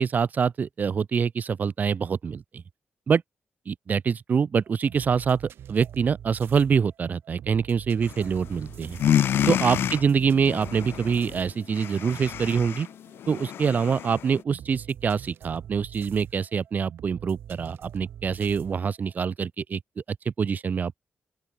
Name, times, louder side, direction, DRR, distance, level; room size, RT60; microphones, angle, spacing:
voice 1, 0.0-2.6 3.1-3.2 3.7-5.4 5.7-9.0 9.5-12.9 13.3-19.8 20.1-21.0, right 6 dB, 50° right, 1.5 m, -25 dB
sound 1, 4.6-19.3, right 10 dB, 85° right, 6.8 m, -45 dB
sound 2, 8.0-8.6 8.8-14.4, left 10 dB, 85° left, 1.1 m, -28 dB
open air
cardioid pair, 110°, 4 cm